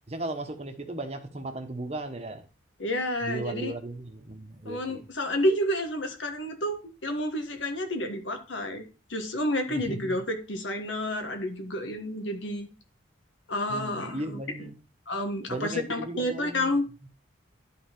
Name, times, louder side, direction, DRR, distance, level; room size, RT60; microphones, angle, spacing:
voice 1, 0.1-2.5 3.2-5.0 9.7-10.2 13.7-14.8 15.5-16.8 17.0-17.1, right 2 dB, 30° right, 5 dB, 1.1 m, -36 dB
voice 2, 2.8-3.7 4.6-8.8 9.1-12.7 13.5-14.7 15.1-16.8, left 1 dB, 75° left, 6 dB, 1.4 m, -30 dB
11.5 x 3.9 x 4.4 m, 0.32 s
head